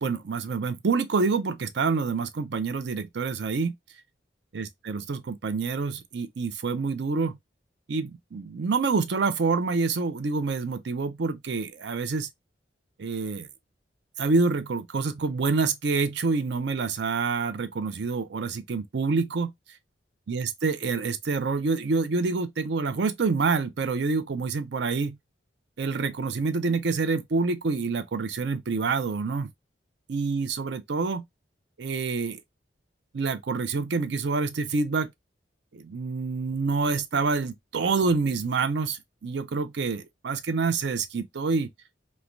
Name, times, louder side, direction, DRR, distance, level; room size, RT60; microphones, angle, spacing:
voice 1, 0.0-3.7 4.5-7.4 7.9-12.3 13.0-13.5 14.2-19.5 20.3-25.2 25.8-29.5 30.1-31.2 31.8-32.4 33.1-35.1 35.7-41.7, right 4 dB, 65° right, 0.5 m, -27 dB
3.1 x 2.2 x 2.4 m
head